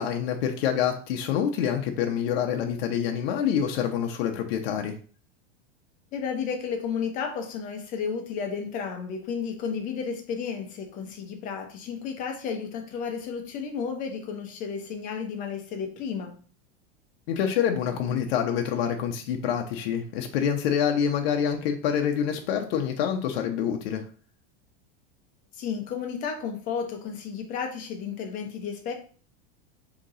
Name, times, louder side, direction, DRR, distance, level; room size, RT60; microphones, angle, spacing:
voice 1, 0.0-5.0 17.3-24.0, left 8 dB, 65° left, 3 dB, 0.6 m, -26 dB
voice 2, 6.1-16.3 25.5-28.9, left 6 dB, 25° left, 4 dB, 0.7 m, -32 dB
3.7 x 2.9 x 4.0 m, 0.41 s
supercardioid pair, 165°, 32 cm